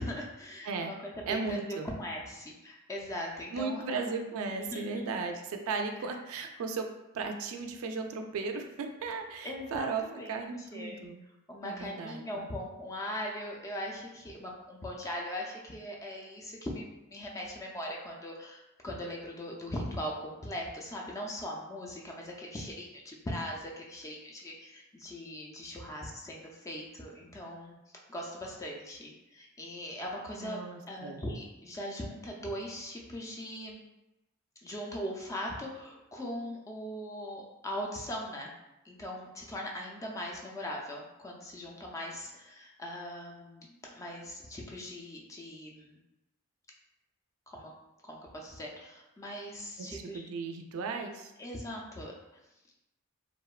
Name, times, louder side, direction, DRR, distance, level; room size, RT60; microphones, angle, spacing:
voice 1, 0.0-4.2 4.7-4.9 6.0-6.1 9.4-11.0 11.5-33.8 34.6-38.5 38.8-46.0 47.5-47.7 48.0-50.3 51.4-52.1, equal, 15° left, -1 dB, 0.3 m, -40 dB
voice 2, 1.3-1.9 3.5-6.9 7.1-10.0 10.3-11.2 11.6-12.5 30.4-31.2 49.8-51.3, right 4 dB, 70° right, 5 dB, 0.3 m, -36 dB
2.8 x 2.1 x 2.3 m, 0.95 s
head